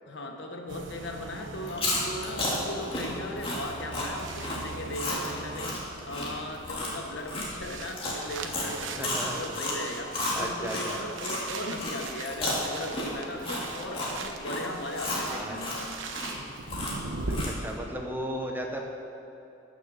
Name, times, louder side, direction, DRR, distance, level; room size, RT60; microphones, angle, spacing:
voice 1, 0.1-15.9, left 1 dB, 70° left, 3 dB, 1.2 m, -38 dB
sound 1, 0.7-17.5, right 3 dB, 90° right, 1.0 m, -41 dB
Chewing mastication, 1.6-11.4 11.8-17.7, left 1 dB, 30° left, 2.3 m, -33 dB
voice 2, 9.0-9.6 10.3-11.0 15.3-15.6 17.4-18.8, right 1 dB, 10° right, 1 dB, 1.0 m, -35 dB
14.0 x 6.6 x 6.5 m, 2.8 s
head